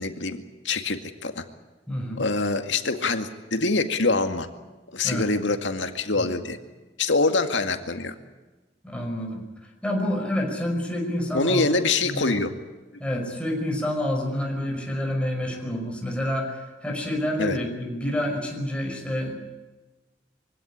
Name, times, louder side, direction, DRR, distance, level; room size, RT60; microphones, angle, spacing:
voice 1, 0.0-1.4 2.2-4.5 4.9-6.6 7.0-8.1 11.3-12.5 17.4-17.6, left 3 dB, 80° left, 7 dB, 2.1 m, -25 dB
voice 2, 1.9-2.2 5.0-5.3 6.2-6.3 8.8-9.4 9.8-11.6 12.0-12.3 13.0-19.3, left 1 dB, 5° left, 0 dB, 5.6 m, -28 dB
24.0 x 17.0 x 9.9 m, 1.2 s
head